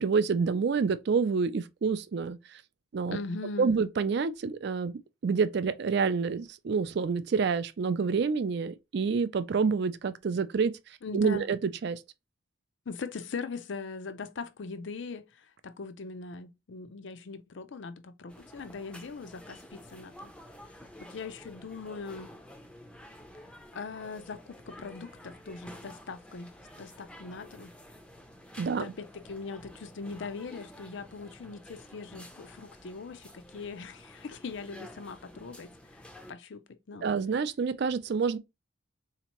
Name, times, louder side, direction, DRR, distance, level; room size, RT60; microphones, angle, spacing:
voice 1, 0.0-2.6 2.9-3.2 3.6-10.7 11.1-12.0 28.6-28.9 37.0-38.4, right 5 dB, 55° right, 0.3 m, -28 dB
voice 2, 3.1-3.7 11.0-11.5 12.9-20.3 21.0-22.4 23.7-26.5 26.8-27.7 28.7-36.0 36.3-37.1, left 4 dB, 60° left, 0.5 m, -41 dB
sound 1, 18.3-36.3, left 1 dB, 5° left, 0.5 m, -50 dB
4.2 x 2.9 x 2.9 m
head